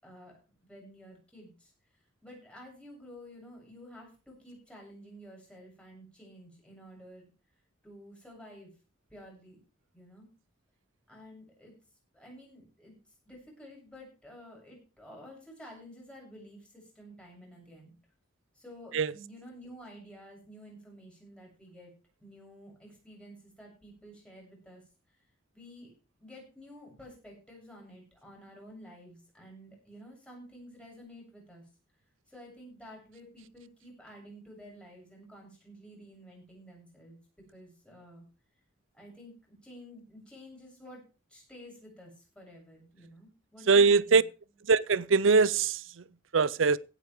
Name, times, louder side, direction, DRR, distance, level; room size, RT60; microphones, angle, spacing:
voice 1, 0.0-1.7 2.2-7.3 7.8-8.7 9.1-9.6 9.9-10.3 11.1-11.7 12.1-12.9 13.3-17.9 18.5-21.9 22.2-24.8 25.5-25.9 26.2-31.6 32.3-37.2 37.5-38.2 38.9-41.0 41.3-44.2, equal, 5° left, 7.5 m, -51 dB
voice 2, 43.7-44.2 44.7-45.8 46.3-46.8, right 4 dB, 65° right, 0.6 m, -22 dB
16.5 x 8.5 x 4.7 m
head